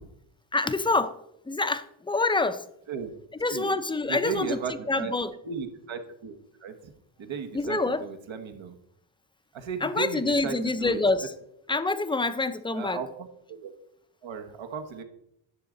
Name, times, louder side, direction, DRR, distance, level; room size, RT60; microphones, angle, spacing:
voice 1, 0.5-1.2 1.5-2.6 3.4-4.6 4.9-5.3 7.5-8.0 9.8-11.3 11.7-13.0, left 3 dB, 10° left, 12 dB, 0.5 m, -26 dB
voice 2, 4.1-5.1 5.4-6.9 7.2-8.7 9.5-11.3 12.7-13.7 14.2-15.0, right 5 dB, 75° right, 6 dB, 1.4 m, -35 dB
11.0 x 7.4 x 3.9 m, 0.78 s
wide cardioid pair, 110°, 48 cm